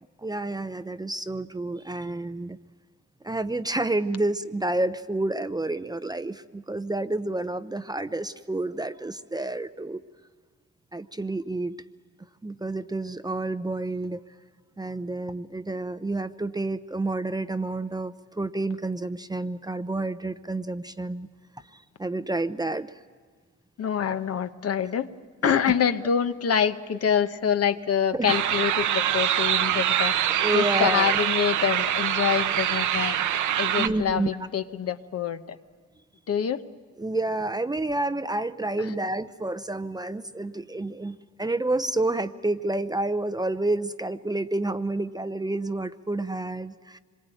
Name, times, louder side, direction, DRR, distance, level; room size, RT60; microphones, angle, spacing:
voice 1, 0.0-2.6 3.2-10.0 10.9-11.8 12.4-14.2 14.8-21.3 21.7-23.0 25.4-25.5 28.1-28.3 30.4-31.2 33.8-34.3 37.0-47.0, right 2 dB, 15° right, 11 dB, 0.7 m, -29 dB
voice 2, 23.8-25.1 25.4-30.1 30.5-33.2 33.6-35.6 36.3-36.6, left 8 dB, 55° left, 10 dB, 1.0 m, -26 dB
sound 1, 28.3-33.9, right 11 dB, 75° right, 0.9 m, -24 dB
25.5 x 22.0 x 9.1 m, 1.6 s
cardioid pair, 90°, 30 cm